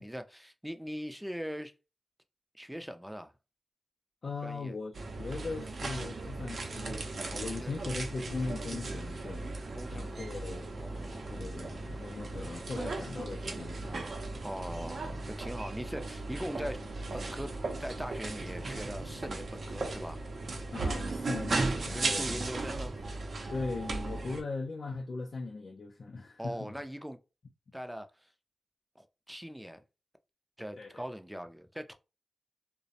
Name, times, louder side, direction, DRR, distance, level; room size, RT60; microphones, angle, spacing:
voice 1, 0.0-1.7 2.5-3.3 4.4-4.8 7.3-7.7 9.7-11.4 14.4-16.8 17.1-20.2 21.9-23.0 26.4-27.2 27.7-28.3 29.0-29.8 30.6-31.9, equal, 5° right, 0.4 m, -41 dB
voice 2, 4.2-7.0 7.3-9.5 9.9-10.8 11.3-14.0 20.7-22.5 23.5-26.7 27.7-27.8 30.8-31.0, left 3 dB, 65° left, 0.4 m, -39 dB
sound 1, 4.9-24.4, right 3 dB, 70° right, 0.5 m, -37 dB
sound 2, 7.0-12.6 14.1-20.5, right 2 dB, 45° right, 0.8 m, -55 dB
2.4 x 2.0 x 2.7 m
cardioid pair, 55°, 0 cm